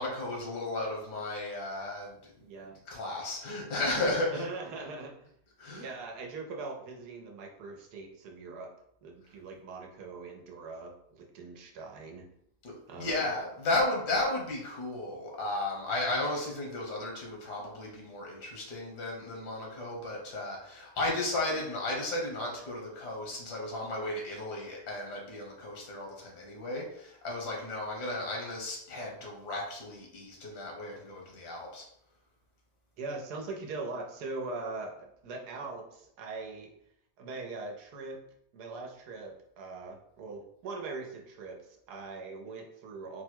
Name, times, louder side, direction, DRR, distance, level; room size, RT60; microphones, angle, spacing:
voice 1, 0.0-2.2 2.9-4.4 5.6-5.9 12.6-31.9, left 2 dB, 80° left, -1 dB, 1.8 m, -34 dB
voice 2, 2.4-2.8 4.3-5.3 5.7-8.7 9.0-12.3 12.9-13.3 33.0-36.7 37.2-38.2 38.5-43.2, right 3 dB, 75° right, 2 dB, 1.3 m, -41 dB
4.7 x 2.2 x 4.4 m, 0.73 s
omnidirectional pair, 1.7 m